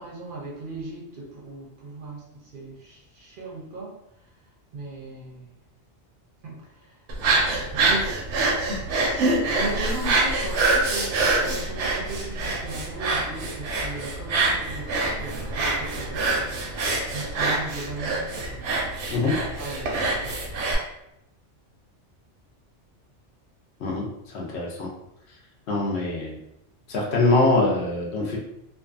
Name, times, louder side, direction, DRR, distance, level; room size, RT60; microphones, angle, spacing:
voice 1, 0.0-3.9 4.7-5.5 6.4-7.0 7.7-8.2 9.5-16.4 17.1-18.6 19.6-20.5, right 2 dB, 55° right, -3 dB, 0.7 m, -37 dB
sound 1, 7.1-20.7, right 3 dB, 90° right, 0.9 m, -25 dB
voice 2, 24.3-24.9 25.7-26.4 26.9-28.4, left 2 dB, 70° left, -1 dB, 0.9 m, -23 dB
2.5 x 2.4 x 2.4 m, 0.81 s
omnidirectional pair, 1.2 m